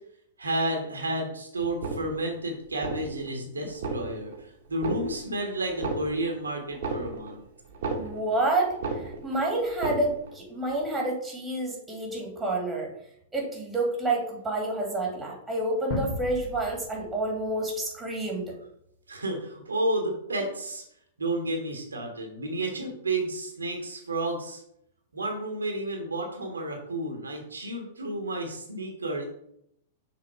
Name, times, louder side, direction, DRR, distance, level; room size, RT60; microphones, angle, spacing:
voice 1, 0.4-7.4 19.1-20.8 21.2-24.6 25.1-29.2, right 1 dB, 75° right, 2 dB, 1.4 m, -31 dB
sound 1, 1.7-2.4 2.7-3.3 3.7-4.4 4.7-5.4 5.7-8.4 8.7-9.4 9.7-10.4 10.7-10.8, right 3 dB, 55° right, 1.3 m, -34 dB
voice 2, 7.9-12.9 13.3-18.5, right 2 dB, 10° right, 0 dB, 2.2 m, -29 dB
sound 2, 15.9-18.8, left 3 dB, 35° left, 1.9 m, -37 dB
6.2 x 4.1 x 4.7 m, 0.73 s
figure-of-eight pair, 100°, 0 cm